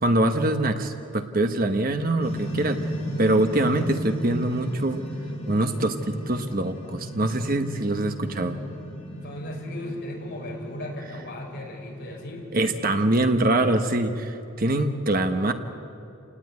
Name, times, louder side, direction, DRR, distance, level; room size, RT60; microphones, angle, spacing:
voice 1, 0.0-2.8 3.2-5.0 5.5-8.6 12.5-15.5, right 1 dB, 40° right, 7 dB, 1.2 m, -24 dB
sound 1, 2.2-13.6, equal, 25° left, 6.8 m, -35 dB
voice 2, 9.2-12.5, left 1 dB, 50° left, -1 dB, 5.9 m, -36 dB
29.5 x 18.5 x 9.5 m, 2.9 s
head